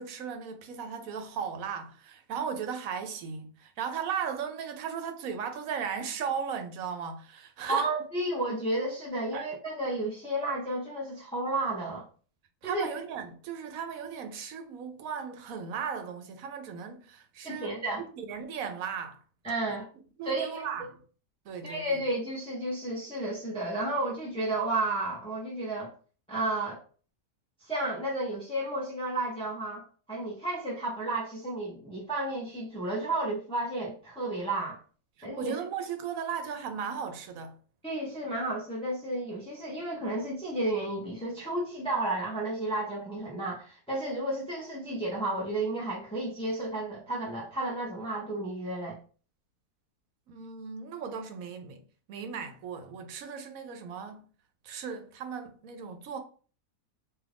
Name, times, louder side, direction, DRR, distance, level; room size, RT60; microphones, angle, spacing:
voice 1, 0.0-7.9 9.3-9.5 12.6-19.2 20.2-21.0 21.5-22.0 35.2-37.6 50.3-51.8 52.1-54.2 54.6-56.2, right 7 dB, 70° right, 0.9 m, -36 dB
voice 2, 7.7-12.0 12.6-12.9 17.4-18.0 19.4-19.9 20.2-20.6 21.6-25.9 26.3-26.8 27.6-34.8 35.2-35.6 37.8-49.0, right 2 dB, 10° left, 0.4 m, -32 dB
2.9 x 2.4 x 3.4 m
omnidirectional pair, 1.6 m